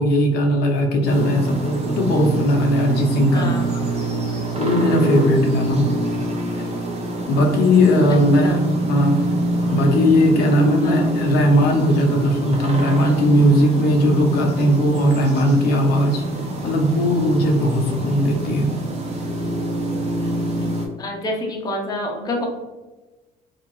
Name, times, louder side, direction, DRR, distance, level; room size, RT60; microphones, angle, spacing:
voice 1, 0.0-3.5 4.0-4.1 4.6-5.8 6.5-6.7 7.3-8.6 8.9-9.3 9.6-16.2 16.6-18.8, equal, 70° left, 1 dB, 0.7 m, -18 dB
sound 1, 1.1-20.9, right 2 dB, 40° right, 0.6 m, -25 dB
voice 2, 3.3-3.9 8.1-8.6 10.8-11.2 21.0-22.4, left 1 dB, 25° left, 0 dB, 0.6 m, -28 dB
2.7 x 2.4 x 3.0 m, 1.1 s
cardioid pair, 110°, 17 cm